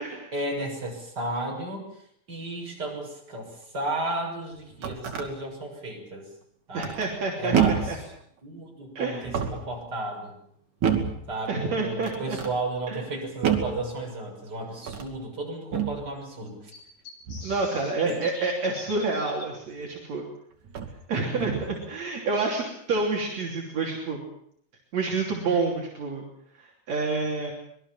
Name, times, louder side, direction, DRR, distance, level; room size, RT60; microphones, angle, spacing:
voice 1, 0.3-1.9 2.3-6.2 6.7-6.9 7.4-8.0 8.4-10.3 11.3-16.7 18.1-18.2 21.1-21.4, right 2 dB, 30° right, 0 dB, 7.2 m, -33 dB
sound 1, 4.5-5.3 6.8-7.2 7.5-8.0 9.1-9.7 10.8-11.2 12.0-12.5 13.4-13.8 14.8-15.2 15.7-16.0 17.3-17.6 19.7-19.8 20.6-21.0 21.4-21.8, right 8 dB, 75° right, 3.9 m, -28 dB
voice 2, 6.7-8.0 9.0-9.3 11.5-12.4 12.9-13.0 17.4-20.2 21.1-24.2 24.9-26.2 26.6-27.5, right 3 dB, 60° right, -1 dB, 4.4 m, -28 dB
sound 2, 11.2-11.3 13.2-13.3 13.9-14.0 14.2-14.3 16.7-19.5, left 2 dB, 40° left, 4.9 m, -44 dB
25.5 x 21.0 x 7.5 m, 0.68 s
omnidirectional pair, 3.5 m